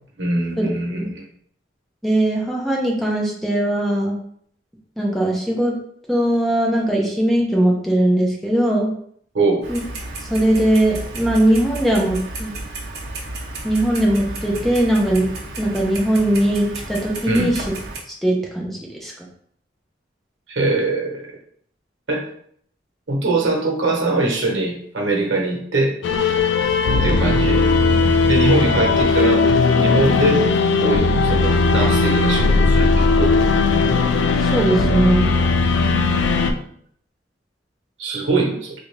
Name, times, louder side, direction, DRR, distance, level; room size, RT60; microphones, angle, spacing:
voice 1, 0.2-1.3 9.3-9.6 17.2-17.5 20.5-21.2 22.1-22.3 23.1-25.9 27.0-27.6 28.2-29.5 29.7-30.4 30.8-33.3 36.1-36.6 38.0-38.7, right 2 dB, 90° right, -1 dB, 0.9 m, -22 dB
voice 2, 2.0-4.2 5.0-5.7 6.1-8.9 9.7-9.8 10.3-12.5 13.6-15.3 15.6-17.6 18.2-19.1 34.4-35.3, right 1 dB, ahead, -2 dB, 0.6 m, -19 dB
Clock, 9.6-18.0, right 2 dB, 60° right, 0.8 m, -32 dB
sound 1, 26.0-36.5, left 3 dB, 70° left, 0.3 m, -17 dB
3.3 x 2.5 x 3.2 m, 0.63 s
head